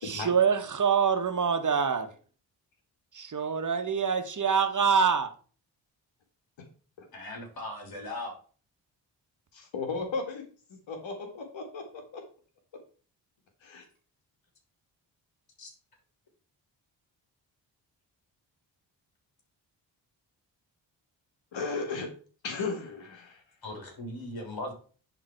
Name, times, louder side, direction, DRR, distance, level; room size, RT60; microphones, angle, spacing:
voice 1, 0.0-2.1 3.1-5.3, right 6 dB, 40° right, 1.5 m, -25 dB
voice 2, 7.1-8.4 15.6-15.7 23.6-24.7, left 1 dB, 50° left, 3.5 m, -38 dB
voice 3, 9.5-10.4 10.7-12.2 13.6-13.9 21.5-22.1 22.4-23.4, left 4 dB, 70° left, 2.0 m, -35 dB
10.5 x 3.8 x 4.6 m
supercardioid pair, 50°, 47 cm